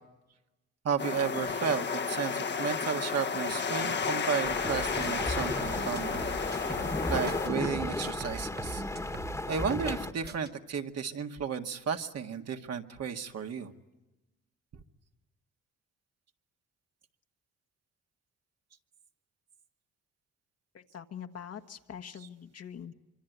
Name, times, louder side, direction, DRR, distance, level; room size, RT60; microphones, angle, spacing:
voice 1, 0.8-6.2 6.6-6.7 7.1-8.8 9.5-13.7, right 7 dB, 55° right, 4 dB, 1.9 m, -33 dB
sound 1, 1.0-7.5, left 5 dB, 35° left, 1.2 m, -32 dB
sound 2, 4.4-10.1, left 2 dB, 10° left, 1.6 m, -35 dB
sound 3, 4.6-7.0 7.3-10.0 10.3-10.5, right 4 dB, 35° right, 1.4 m, -43 dB
voice 2, 20.7-22.9, left 8 dB, 55° left, 7 dB, 1.6 m, -44 dB
25.0 x 25.0 x 9.4 m, 1.0 s
cardioid pair, 90°, 30 cm